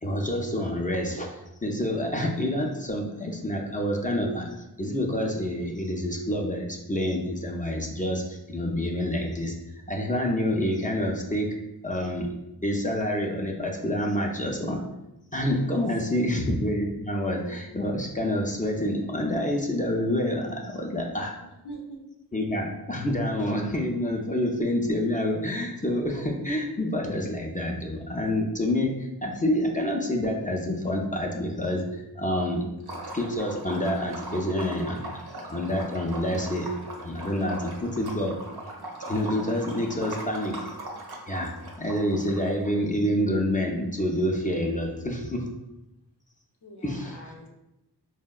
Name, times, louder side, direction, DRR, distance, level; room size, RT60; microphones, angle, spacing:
voice 1, 0.0-4.5 4.8-9.5 9.9-11.5 11.8-12.3 12.6-14.8 15.3-21.3 22.3-32.6 33.1-35.0 35.5-36.7 37.0-38.4 39.1-40.6 41.3-41.5 41.8-45.5 46.8-47.2, left 1 dB, 20° left, -1 dB, 0.4 m, -27 dB
voice 2, 15.7-16.3 21.6-22.0 46.6-47.5, right 1 dB, 75° left, 0 dB, 0.7 m, -43 dB
Liquid, 32.8-42.7, right 1 dB, 70° right, 0.7 m, -39 dB
3.5 x 2.1 x 2.3 m, 0.92 s
cardioid pair, 40°, 40 cm